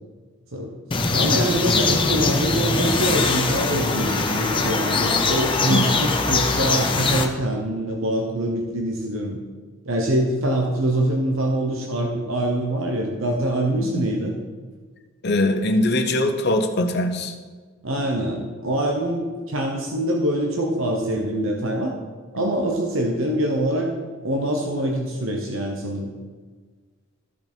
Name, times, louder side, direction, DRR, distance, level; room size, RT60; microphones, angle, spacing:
sound 1, 0.9-7.3, left 3 dB, 25° left, 0.9 m, -22 dB
voice 1, 1.1-9.4 9.9-14.4 17.8-22.0 22.3-23.9 24.2-26.1, right 1 dB, 80° right, 1 dB, 1.1 m, -24 dB
voice 2, 15.2-17.3 22.4-22.5, left 1 dB, 55° left, 5 dB, 0.9 m, -22 dB
13.5 x 5.7 x 4.6 m, 1.4 s
head